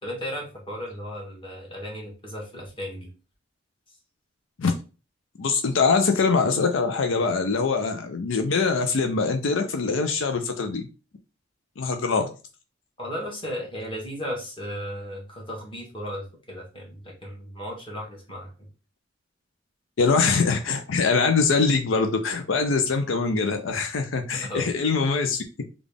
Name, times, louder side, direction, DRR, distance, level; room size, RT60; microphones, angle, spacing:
voice 1, 0.0-3.1 13.0-18.7 24.4-24.7, equal, 25° left, 1.4 m, -35 dB
voice 2, 5.4-10.9 11.8-12.3 20.0-25.4, left 4 dB, 90° left, 0.5 m, -23 dB
3.8 x 2.4 x 3.4 m
head